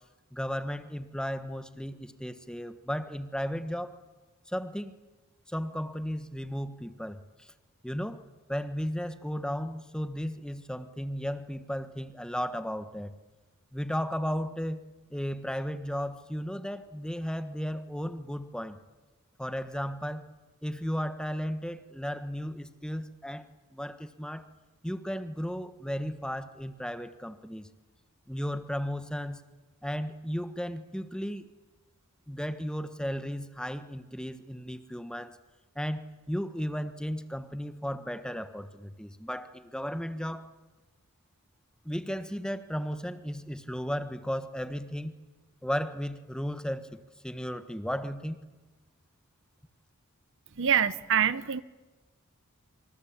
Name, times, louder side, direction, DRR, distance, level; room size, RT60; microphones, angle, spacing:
voice 1, 0.3-4.0 4.5-5.0 5.5-7.5 7.8-8.2 8.5-13.2 13.7-14.8 15.1-18.8 19.4-20.2 20.6-23.5 23.7-24.5 24.8-27.7 28.3-29.4 29.8-31.5 32.3-35.4 35.7-40.5 41.8-45.2 45.6-48.4, equal, 5° left, 1.4 m, -35 dB
voice 2, 50.6-51.6, right 8 dB, 60° right, 0.9 m, -25 dB
26.0 x 25.5 x 8.8 m
head